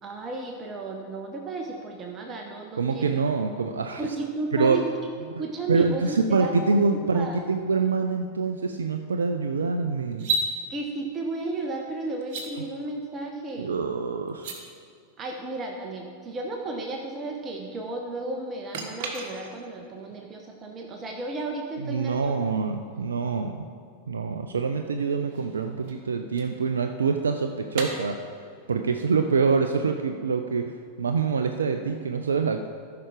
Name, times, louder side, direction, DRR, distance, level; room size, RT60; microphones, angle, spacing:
voice 1, 0.0-3.2 4.0-4.8 5.4-6.8 7.1-7.4 10.7-13.7 15.2-22.4, right 3 dB, 25° right, 1 dB, 1.1 m, -33 dB
voice 2, 2.8-4.0 4.5-4.8 5.3-5.4 5.7-10.3 13.6-14.7 21.8-23.6 24.1-28.2 28.7-32.7, right 4 dB, 70° right, 5 dB, 0.5 m, -25 dB
sound 1, 10.1-10.5 12.2-12.5 14.3-14.6 18.7-19.8 22.9-23.0 25.0-27.1 27.7-27.9, right 3 dB, 45° right, 1.5 m, -33 dB
14.0 x 5.9 x 4.9 m, 2.3 s
figure-of-eight pair, 90°, 0 cm